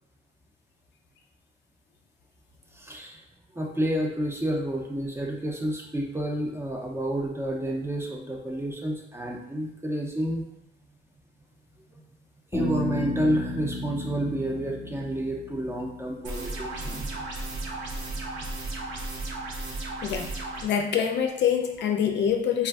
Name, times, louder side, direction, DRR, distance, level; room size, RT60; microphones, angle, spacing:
voice 1, 2.7-3.2 3.5-10.5 11.9-12.0 12.5-17.4 18.2-18.3 19.6-19.7, right 1 dB, 10° right, 0 dB, 0.4 m, -30 dB
Bass guitar, 12.5-16.2, left 2 dB, 20° left, 0.7 m, -33 dB
sound 1, 16.2-20.6, right 2 dB, 70° right, 0.6 m, -34 dB
voice 2, 20.0-20.4 20.6-22.7, left 8 dB, 65° left, 3 dB, 0.4 m, -25 dB
2.4 x 2.3 x 2.3 m, 0.84 s
cardioid pair, 90°, 20 cm